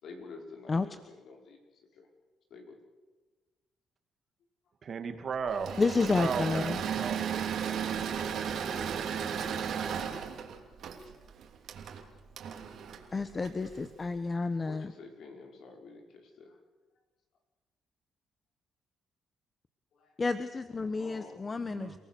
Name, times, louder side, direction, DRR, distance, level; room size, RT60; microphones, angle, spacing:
voice 1, 0.0-2.1 2.5-2.8 14.7-16.6 19.9-20.2 21.0-21.4, left 4 dB, 70° left, 2 dB, 5.5 m, -50 dB
voice 2, 4.8-5.7 6.2-7.2 21.6-22.0, right 6 dB, 50° right, 7 dB, 2.5 m, -35 dB
Engine / Mechanisms, 5.5-13.9, right 7 dB, 70° right, 3.2 m, -35 dB
voice 3, 5.8-6.8 13.1-14.9 20.2-22.0, left 3 dB, 30° left, 11 dB, 1.1 m, -30 dB
29.5 x 18.5 x 6.8 m, 1.3 s
cardioid pair, 90°, 0 cm